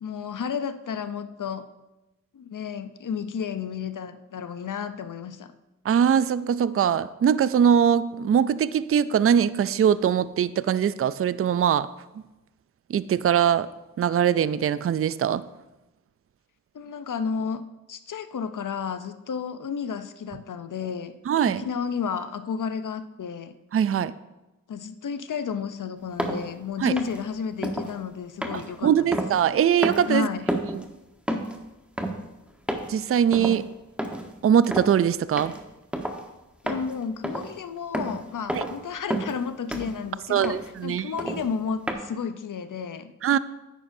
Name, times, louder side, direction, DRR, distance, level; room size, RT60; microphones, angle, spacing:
voice 1, 0.0-1.7 2.3-5.5 16.7-17.6 17.9-21.1 21.5-23.5 24.7-29.2 30.1-30.5 36.6-40.6 40.8-43.1, left 6 dB, 65° left, 11 dB, 0.7 m, -32 dB
voice 2, 5.9-11.9 12.9-13.7 14.0-15.4 21.3-21.6 23.7-24.1 26.8-27.0 28.5-30.3 30.7-30.8 32.9-33.7 34.4-35.5 38.5-38.7 40.3-41.1 43.2-43.4, right 8 dB, 45° right, 16 dB, 0.4 m, -22 dB
sound 1, 26.2-26.4 27.0-27.2 27.6-27.9 28.4-29.6 29.8-30.1 30.5-30.8 31.3-31.6 32.0-32.2 32.7-33.0 33.3-33.6 34.0-34.3 34.6-34.9 35.4-35.6 35.9-36.2 36.7-36.9 37.2-37.5 37.9-38.2 38.5-38.8 39.1-39.4 39.7-40.0 40.4-40.7 41.2-41.5 41.9-42.0, right 1 dB, 5° right, 1.2 m, -30 dB
10.0 x 8.9 x 2.7 m, 1.0 s
cardioid pair, 40°, 33 cm